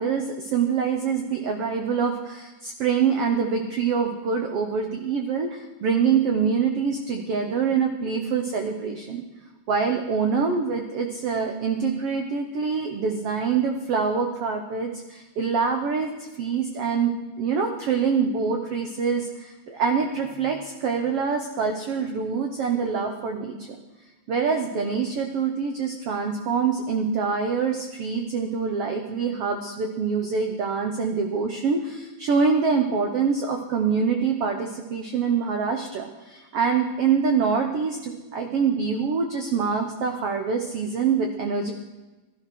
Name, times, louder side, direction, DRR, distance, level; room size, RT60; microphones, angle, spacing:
voice 1, 0.0-9.2 9.7-17.1 17.4-23.6 24.3-41.7, right 5 dB, 70° right, 4 dB, 1.4 m, -25 dB
16.5 x 12.5 x 6.1 m, 1.1 s
omnidirectional pair, 4.0 m